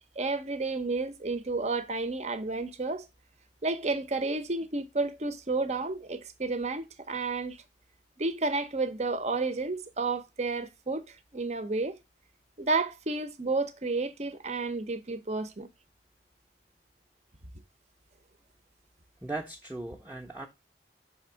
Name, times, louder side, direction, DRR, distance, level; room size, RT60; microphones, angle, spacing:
voice 1, 0.2-3.0 3.6-7.6 8.2-11.0 11.3-12.0 12.6-15.7, right 3 dB, 40° right, 0.8 m, -31 dB
voice 2, 19.2-20.5, right 2 dB, 10° right, 0.8 m, -38 dB
5.7 x 3.5 x 5.7 m
head